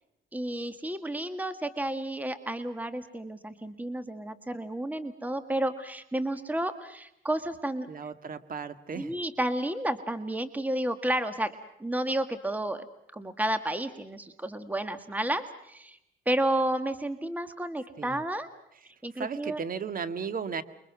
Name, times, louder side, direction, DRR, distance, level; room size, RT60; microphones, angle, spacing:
voice 1, 0.3-7.9 9.0-11.5 11.8-12.8 13.1-16.0 16.2-18.5 19.0-19.6, right 1 dB, 10° right, 10 dB, 1.7 m, -31 dB
voice 2, 7.9-9.2 18.0-18.2 18.8-18.9 19.2-20.6, right 6 dB, 45° right, 12 dB, 1.9 m, -35 dB
29.5 x 23.0 x 6.1 m, 0.81 s
cardioid pair, 90°, 20 cm